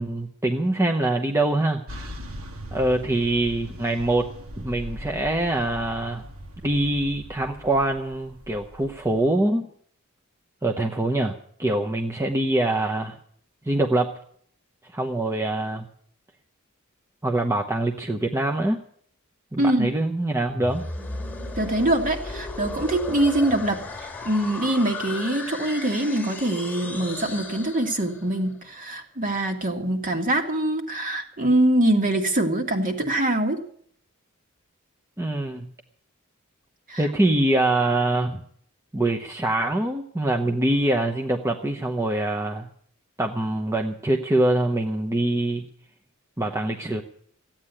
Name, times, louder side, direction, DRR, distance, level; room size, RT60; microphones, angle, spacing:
voice 1, 0.0-2.2 2.7-4.3 4.6-6.2 6.6-9.7 10.6-13.2 13.6-14.1 14.9-15.9 17.2-18.8 19.5-20.8 35.2-35.7 37.0-38.4 38.9-42.7 43.2-45.7 46.4-47.0, right 1 dB, 15° right, 2 dB, 0.9 m, -24 dB
sound 1, 1.9-9.3, left 1 dB, 70° right, 1.9 m, -40 dB
sound 2, 20.5-28.4, left 3 dB, 10° left, 2.0 m, -35 dB
voice 2, 21.6-33.6 36.9-37.1, right 1 dB, 40° right, 4 dB, 2.1 m, -24 dB
15.0 x 8.9 x 9.8 m, 0.62 s
head